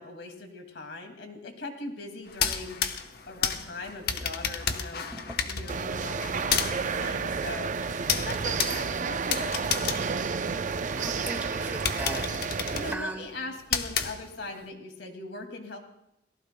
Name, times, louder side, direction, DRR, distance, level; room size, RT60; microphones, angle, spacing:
voice 1, 0.0-2.8 3.3-7.7 8.1-10.6 12.1-12.4 12.7-15.8, left 2 dB, 75° left, 4 dB, 2.3 m, -41 dB
sound 1, 2.3-11.0 11.4-11.5 11.9-14.6, left 7 dB, 60° left, 1.0 m, -32 dB
sound 2, 5.7-13.0, right 5 dB, 45° right, 0.5 m, -31 dB
voice 2, 10.9-12.3 12.6-13.3, right 1 dB, 10° right, 3 dB, 1.7 m, -37 dB
28.5 x 18.5 x 2.2 m, 0.87 s
head